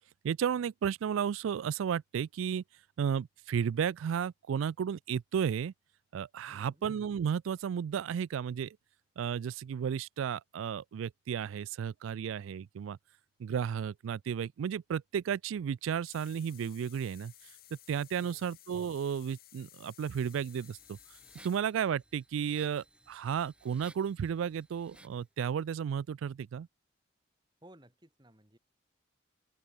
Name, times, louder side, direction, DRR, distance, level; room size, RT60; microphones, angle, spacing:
voice 1, 0.2-2.6 3.0-5.7 6.1-8.8 9.2-13.0 13.4-17.3 17.9-21.0 21.4-26.7, right 8 dB, 80° right, 0.3 m, -33 dB
voice 2, 6.4-6.8 18.2-18.5 27.6-28.6, right 1 dB, 20° right, 4.5 m, -58 dB
sound 1, 16.0-21.6, left 15 dB, 50° left, 1.0 m, -57 dB
sound 2, 20.0-25.3, right 1 dB, 5° right, 5.5 m, -60 dB
open air
head